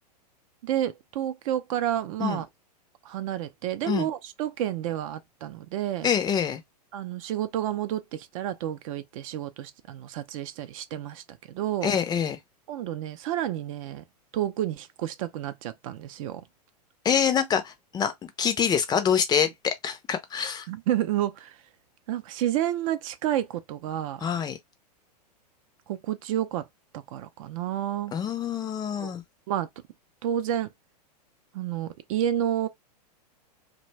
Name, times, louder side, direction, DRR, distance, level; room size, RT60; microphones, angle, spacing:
voice 1, 0.6-2.5 3.0-6.1 6.9-11.9 12.7-14.0 14.3-16.4 20.7-21.6 22.1-24.2 25.9-26.7 26.9-28.1 29.0-29.1 29.5-29.7 30.2-30.7 31.5-32.7, right 11 dB, 55° right, 0.5 m, -30 dB
voice 2, 6.0-6.6 11.8-12.4 17.0-20.7 24.2-24.6 28.1-29.2, left 7 dB, 20° left, 0.4 m, -26 dB
2.5 x 2.2 x 3.1 m
hypercardioid pair, 110°, 21 cm